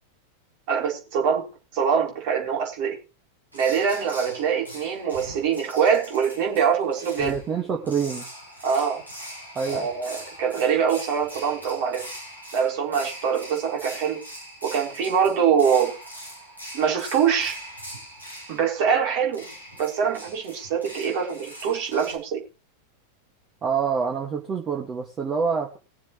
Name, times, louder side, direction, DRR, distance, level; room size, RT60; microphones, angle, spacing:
voice 1, 0.7-1.5 1.7-3.0 3.5-7.4 8.6-9.0 9.7-12.1 12.5-14.2 14.6-16.0 16.7-17.6 18.5-19.4 19.8-22.4, right 7 dB, 45° right, 0 dB, 4.0 m, -24 dB
sound 1, 3.5-22.1, equal, 90° right, 5.8 m, -42 dB
voice 2, 7.2-8.3 9.6-9.9 23.6-25.8, right 6 dB, 25° right, 0 dB, 1.8 m, -26 dB
21.5 x 7.2 x 3.1 m, 0.30 s
figure-of-eight pair, 90°, 0 cm